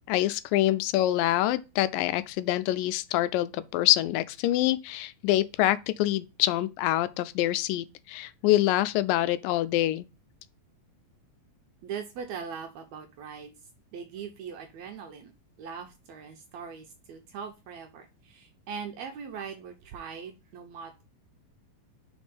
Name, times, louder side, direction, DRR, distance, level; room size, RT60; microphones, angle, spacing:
voice 1, 0.1-10.1, left 15 dB, 90° left, 2.2 m, -26 dB
voice 2, 11.8-13.5 13.9-15.3 15.6-21.0, right 6 dB, 75° right, 1.7 m, -40 dB
5.3 x 4.4 x 5.0 m
omnidirectional pair, 3.8 m